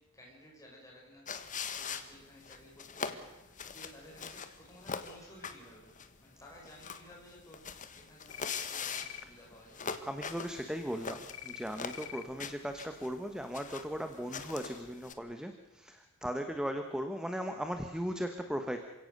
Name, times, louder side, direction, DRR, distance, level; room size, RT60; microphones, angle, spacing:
voice 1, 0.0-5.9 6.2-9.8, equal, 15° left, -2 dB, 5.9 m, -55 dB
sound 1, 1.3-15.1, left 6 dB, 40° left, 1.4 m, -42 dB
sound 2, 8.3-8.6 8.9-9.2 11.3-11.6 11.9-12.2, left 12 dB, 70° left, 1.1 m, -45 dB
voice 2, 10.0-18.8, equal, 5° right, 6 dB, 1.2 m, -37 dB
28.0 x 17.0 x 6.7 m, 1.1 s
head